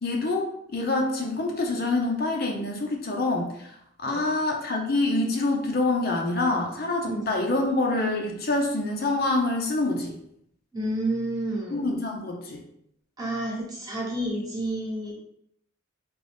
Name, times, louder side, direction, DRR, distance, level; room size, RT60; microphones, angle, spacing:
voice 1, 0.0-3.7 4.0-10.2 11.7-12.6, left 2 dB, 50° left, 1 dB, 0.6 m, -26 dB
voice 2, 10.7-11.8 13.2-15.1, right 1 dB, 20° right, -3 dB, 1.0 m, -30 dB
3.8 x 3.0 x 3.4 m, 0.74 s
head